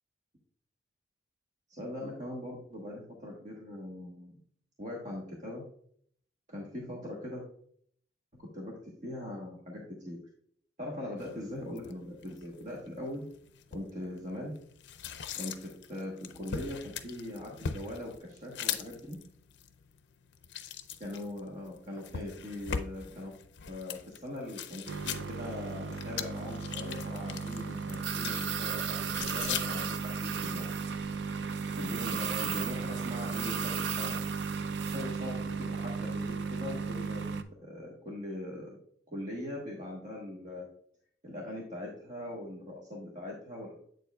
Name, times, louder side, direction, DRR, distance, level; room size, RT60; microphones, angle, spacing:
voice 1, 1.7-4.4 4.8-5.6 6.5-7.4 8.3-10.2 10.8-13.3 13.7-14.5 15.3-19.2 20.6-20.7 21.0-23.3 23.7-30.7 31.7-34.2 34.8-37.3 37.6-38.8 39.1-40.7 41.2-43.7, left 1 dB, 40° right, -2 dB, 1.2 m, -41 dB
sound 1, 11.2-30.2, left 7 dB, 65° left, 0.5 m, -42 dB
sound 2, 24.9-37.4, right 5 dB, 65° right, 0.4 m, -34 dB
8.0 x 6.9 x 2.3 m, 0.63 s
head